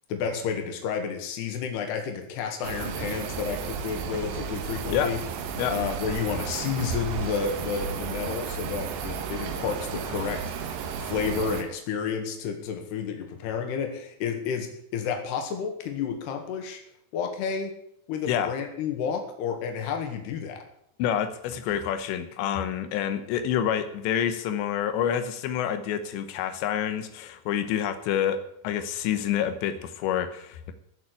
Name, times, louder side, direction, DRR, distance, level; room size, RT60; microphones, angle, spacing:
voice 1, 0.1-5.2 5.7-10.7 11.0-16.8 17.1-17.7 18.1-20.6, left 6 dB, 70° left, 4 dB, 3.9 m, -31 dB
sound 1, 2.6-11.6, right 6 dB, 80° right, 3.6 m, -33 dB
voice 2, 21.0-30.7, left 9 dB, 90° left, 9 dB, 3.3 m, -28 dB
15.0 x 7.2 x 9.9 m, 0.73 s
omnidirectional pair, 5.0 m